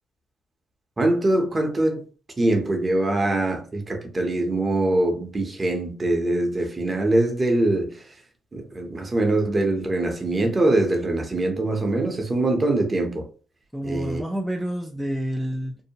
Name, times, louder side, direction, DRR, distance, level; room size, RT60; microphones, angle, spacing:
voice 1, 1.0-2.0 2.4-8.0 8.5-13.3 13.8-14.2, right 2 dB, 25° right, 0.7 m, -23 dB
voice 2, 13.7-15.8, equal, ahead, 0.4 m, -28 dB
2.7 x 2.1 x 2.8 m
cardioid pair, 90°, 0 cm